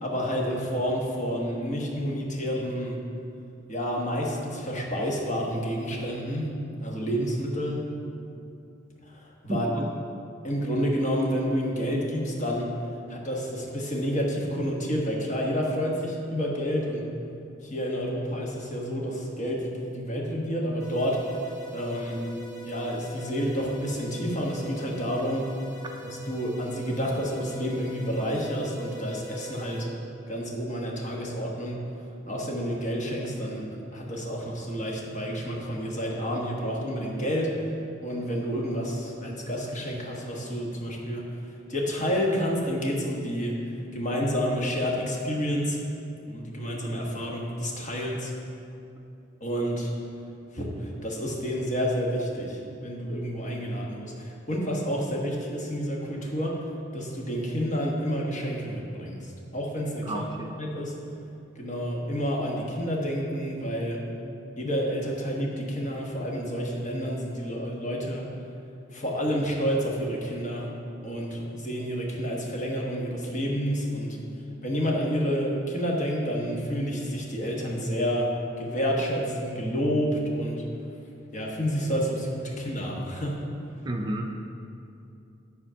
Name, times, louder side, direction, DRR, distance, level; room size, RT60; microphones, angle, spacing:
voice 1, 0.0-3.0 3.7-6.5 6.8-7.8 9.0-9.7 10.4-12.7 13.1-17.0 17.6-21.2 21.7-22.2 22.6-25.5 26.0-29.9 30.3-31.8 32.3-37.5 38.0-43.5 43.9-45.8 46.3-48.3 49.4-49.9 50.5-56.6 56.9-60.2 60.6-60.9 61.5-64.0 64.6-68.2 68.9-70.7 71.0-74.2 74.6-78.3 78.6-80.6 81.3-83.4, equal, 40° left, -2 dB, 1.3 m, -29 dB
voice 2, 9.5-9.9 60.1-60.5 83.8-84.3, right 1 dB, 20° right, 2 dB, 0.4 m, -31 dB
sound 1, 20.8-29.8, right 1 dB, 70° left, 1.8 m, -43 dB
9.9 x 4.3 x 5.7 m, 2.7 s
head